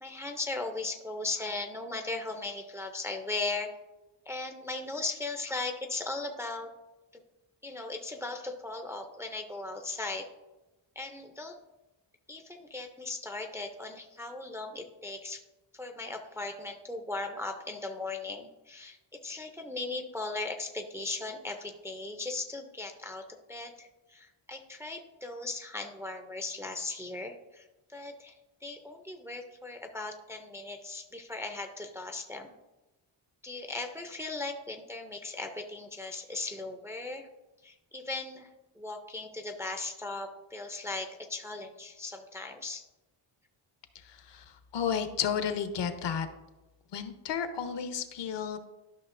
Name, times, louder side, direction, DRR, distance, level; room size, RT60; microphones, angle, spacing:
voice 1, 0.0-3.7 4.3-6.7 7.1-7.2 7.6-10.3 11.0-11.6 12.3-15.4 15.7-32.6 33.4-37.3 37.6-38.5 38.7-42.8, left 3 dB, 5° right, 4 dB, 0.4 m, -38 dB
voice 2, 44.0-44.4 44.7-46.3 46.9-48.6, left 7 dB, 70° left, 9 dB, 0.8 m, -32 dB
11.5 x 6.0 x 2.5 m, 1.0 s
wide cardioid pair, 160°, 44 cm